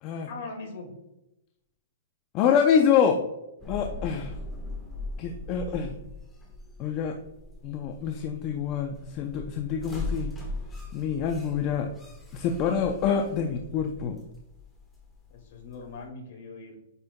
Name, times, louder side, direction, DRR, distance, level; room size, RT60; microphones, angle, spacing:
voice 1, 0.3-0.9 5.5-6.0 15.3-16.7, left 3 dB, 55° left, 2 dB, 2.0 m, -41 dB
voice 2, 2.3-3.3 3.7-4.4 5.2-6.0 6.8-7.2 7.6-10.3 10.9-11.9 12.3-14.2, left 7 dB, 30° left, 4 dB, 0.5 m, -26 dB
sound 1, 3.6-16.0, left 2 dB, 10° left, 1.3 m, -40 dB
8.3 x 5.2 x 2.2 m, 0.89 s
hypercardioid pair, 155°, 0 cm